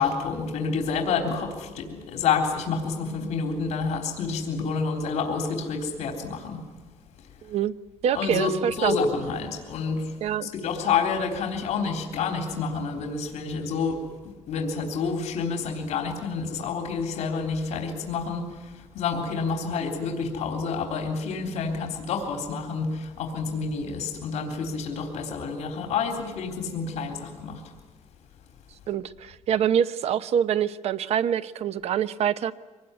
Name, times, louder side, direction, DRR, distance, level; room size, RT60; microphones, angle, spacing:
voice 1, 0.0-6.6 8.1-8.5 8.8-27.6, left 5 dB, 70° left, 4 dB, 3.6 m, -28 dB
voice 2, 7.4-7.7 8.0-8.9 10.2-10.5 28.9-32.5, right 9 dB, 65° right, 14 dB, 0.9 m, -25 dB
24.5 x 19.5 x 9.8 m, 1.3 s
cardioid pair, 145°, 12 cm